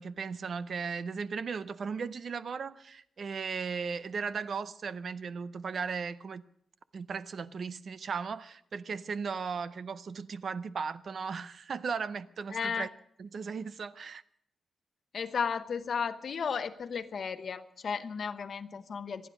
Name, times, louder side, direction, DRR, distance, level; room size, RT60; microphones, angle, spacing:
voice 1, 0.0-6.4 6.9-12.9 13.2-14.2, right 5 dB, 50° right, 0.6 m, -36 dB
voice 2, 12.5-12.9 15.1-19.3, left 6 dB, 50° left, 0.9 m, -34 dB
26.5 x 10.0 x 5.2 m
wide cardioid pair, 150°, 0 cm